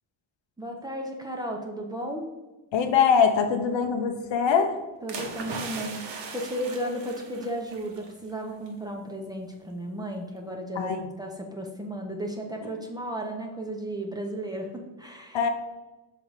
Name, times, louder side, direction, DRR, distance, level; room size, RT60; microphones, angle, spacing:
voice 1, 0.6-2.3 5.0-15.4, right 1 dB, 10° right, 1 dB, 0.8 m, -34 dB
voice 2, 2.7-4.8 10.8-11.1 12.6-12.7 15.3-15.5, left 6 dB, 65° left, 5 dB, 0.9 m, -23 dB
sound 1, 5.1-8.1 8.4-8.7, right 4 dB, 60° right, 1.1 m, -38 dB
5.9 x 3.8 x 4.8 m, 1.1 s
cardioid pair, 115°, 48 cm